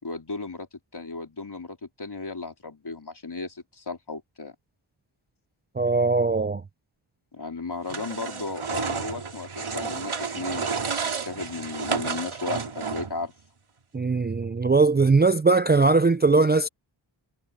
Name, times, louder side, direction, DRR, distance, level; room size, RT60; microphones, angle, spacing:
voice 1, 0.0-4.5 7.3-13.3, left 3 dB, 55° left, 4.3 m, -35 dB
voice 2, 5.8-6.6 13.9-16.7, right 3 dB, 20° right, 0.4 m, -20 dB
sound 1, 7.9-13.3, right 5 dB, 80° right, 3.2 m, -31 dB
wide cardioid pair, 55°, 49 cm